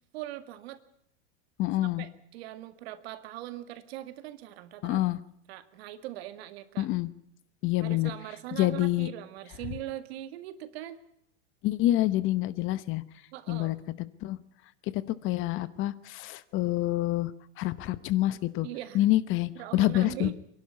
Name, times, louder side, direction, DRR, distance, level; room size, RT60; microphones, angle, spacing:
voice 1, 0.1-0.8 1.8-5.0 5.5-6.9 7.8-11.0 13.3-13.8 18.6-19.0 19.6-20.3, right 13 dB, 60° right, 11 dB, 2.0 m, -41 dB
voice 2, 1.6-2.1 4.8-5.2 6.8-7.1 7.6-8.1 8.6-9.1 11.6-13.0 13.5-13.8 14.2-14.4 14.9-18.7 18.9-20.3, left 15 dB, 35° left, 16 dB, 0.9 m, -27 dB
27.0 x 11.5 x 9.6 m, 0.72 s
supercardioid pair, 135°, 35 cm